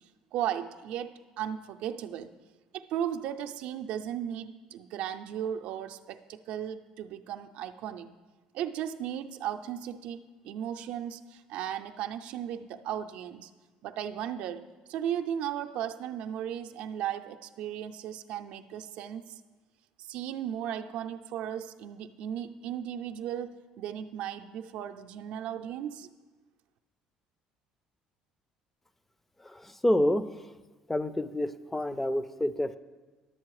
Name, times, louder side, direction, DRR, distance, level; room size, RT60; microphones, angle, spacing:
voice 1, 0.3-2.3 2.7-8.1 8.5-10.2 10.4-13.5 13.8-19.3 20.0-26.1, right 10 dB, 70° right, 6 dB, 0.5 m, -36 dB
voice 2, 29.4-30.4 30.9-32.8, left 1 dB, 10° left, 13 dB, 0.5 m, -28 dB
11.0 x 7.6 x 4.8 m, 1.3 s
cardioid pair, 125°, 2 cm